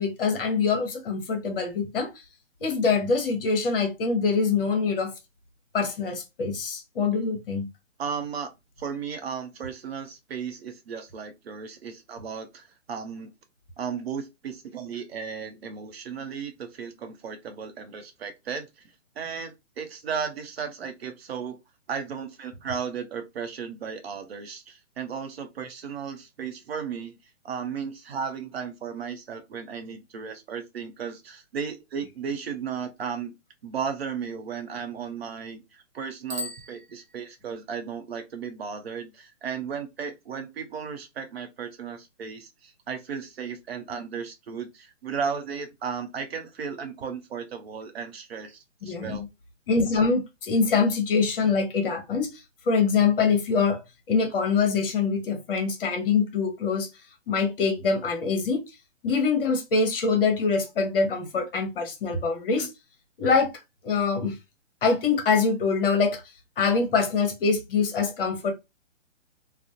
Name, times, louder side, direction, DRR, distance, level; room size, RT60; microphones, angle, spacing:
voice 1, 0.0-2.1 2.6-5.1 5.7-7.7 48.8-49.3 49.7-52.4 52.7-53.8 54.1-56.9 57.3-58.6 59.0-62.7 63.2-63.5 63.8-64.4 64.8-66.2 66.6-68.5, left 5 dB, 45° left, 0.9 m, -24 dB
voice 2, 8.0-8.5 8.8-13.3 13.8-18.7 19.2-21.6 21.9-27.1 27.4-33.3 33.6-49.2 62.6-62.7, right 6 dB, 50° right, 0.6 m, -35 dB
Bicycle bell, 36.2-37.6, left 1 dB, 80° right, 0.8 m, -38 dB
2.4 x 2.0 x 2.7 m
hypercardioid pair, 140°, 38 cm